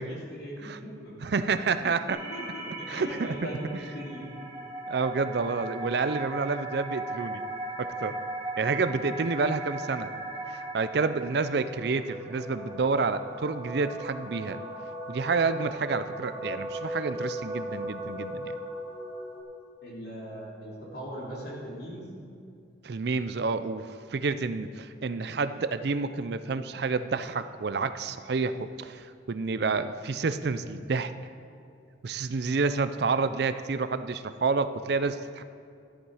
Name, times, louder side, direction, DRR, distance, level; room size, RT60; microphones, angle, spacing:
voice 1, 0.0-1.3 1.8-4.3 19.8-22.1, equal, 55° left, -4 dB, 3.3 m, -40 dB
voice 2, 1.2-2.2 2.9-3.3 4.9-7.4 7.8-8.2 8.6-10.1 10.5-14.6 15.1-18.6 22.8-31.1 32.0-35.4, right 4 dB, 60° right, 12 dB, 0.5 m, -29 dB
sound 1, 2.1-19.4, right 1 dB, 15° right, 2.5 m, -38 dB
13.5 x 11.0 x 4.9 m, 2.4 s
head